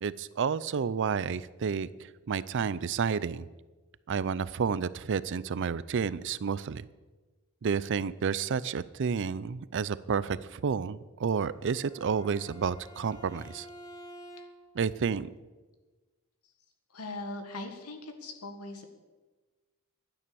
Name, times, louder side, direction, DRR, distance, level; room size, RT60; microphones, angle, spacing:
voice 1, 0.0-3.5 4.1-6.8 7.6-13.7 14.7-15.3, right 6 dB, 55° right, 18 dB, 0.4 m, -30 dB
Bowed string instrument, 11.5-14.8, equal, 15° left, 1.2 m, -50 dB
voice 2, 16.9-18.8, left 2 dB, 80° left, 6 dB, 1.8 m, -40 dB
12.0 x 9.6 x 6.9 m, 1.2 s
head